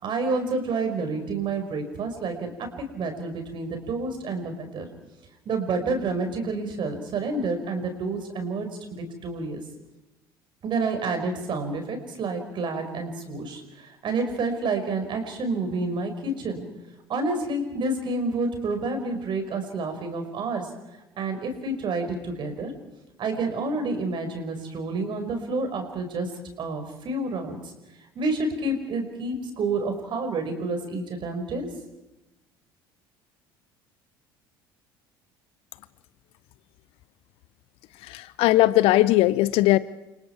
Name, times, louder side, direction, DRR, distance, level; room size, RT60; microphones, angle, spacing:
voice 1, 0.0-4.9 5.5-9.6 10.6-16.7 17.1-20.7 21.2-22.7 23.2-26.3 26.6-27.6 28.2-31.7, right 3 dB, 40° right, 6 dB, 5.3 m, -29 dB
voice 2, 38.1-39.8, left 16 dB, 50° left, 18 dB, 0.8 m, -19 dB
29.5 x 26.5 x 4.7 m, 0.98 s
figure-of-eight pair, 60°, 12 cm